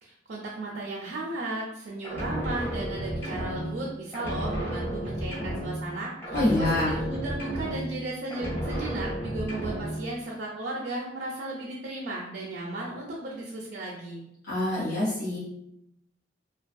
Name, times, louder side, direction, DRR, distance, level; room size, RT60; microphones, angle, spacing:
voice 1, 0.0-14.2, right 2 dB, 60° right, -3 dB, 0.4 m, -35 dB
sound 1, 2.0-6.0 6.2-8.0 8.3-10.0, equal, 15° left, 0.7 m, -32 dB
voice 2, 6.3-7.0 14.5-15.4, left 1 dB, 60° left, -10 dB, 0.8 m, -26 dB
2.4 x 2.2 x 2.5 m, 0.80 s
head